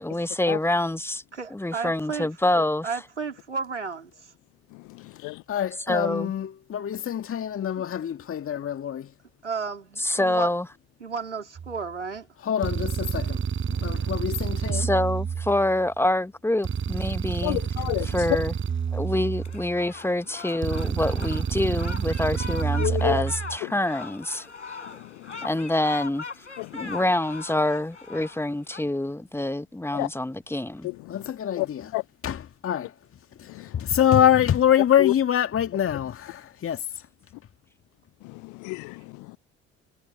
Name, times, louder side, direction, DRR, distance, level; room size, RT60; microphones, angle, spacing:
voice 1, 0.0-1.2 1.5-2.9 5.9-6.3 10.0-10.6 14.7-17.6 18.0-18.5 18.9-24.4 25.4-26.2 26.7-30.9, left 1 dB, 5° left, 1.5 m, -26 dB
voice 2, 1.3-2.3 2.8-4.3 9.4-10.5 11.0-12.3, right 5 dB, 90° right, 3.8 m, -33 dB
voice 3, 4.7-5.4 13.9-14.0 17.4-18.1 22.8-23.2 23.6-23.7 24.8-25.5 26.6-27.0 29.9-30.1 30.8-31.7 31.9-32.0 33.5-33.8 35.0-35.1 38.2-39.4, left 25 dB, 55° left, 0.7 m, -31 dB
voice 4, 5.5-9.1 12.4-13.4 13.8-14.9 31.1-31.9 32.2-32.9 33.4-36.8, left 10 dB, 40° left, 2.0 m, -25 dB
sound 1, 11.6-11.8 12.6-15.9 16.6-19.9 20.6-23.6, right 7 dB, 35° right, 5.6 m, -29 dB
sound 2, 19.4-28.8, left 4 dB, 90° left, 5.3 m, -40 dB
figure-of-eight pair, 55°, 35 cm